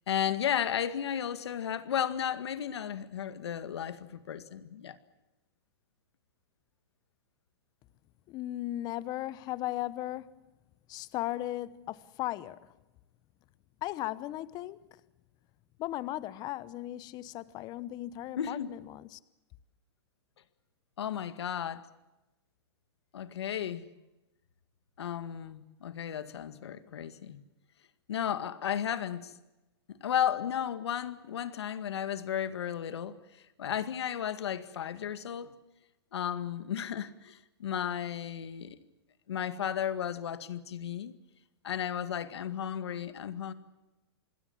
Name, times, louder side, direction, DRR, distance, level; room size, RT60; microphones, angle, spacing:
voice 1, 0.1-5.0 18.4-18.7 21.0-21.9 23.1-23.9 25.0-27.4 28.1-29.3 29.9-33.2 33.6-35.5 36.1-38.8 39.3-41.1 41.6-43.5, left 9 dB, 80° left, 2.0 m, -34 dB
voice 2, 8.3-10.4 10.9-12.6 13.8-15.0 15.8-19.2, left 15 dB, 30° left, 1.0 m, -37 dB
27.0 x 21.0 x 7.2 m
hypercardioid pair, 145°, 14 cm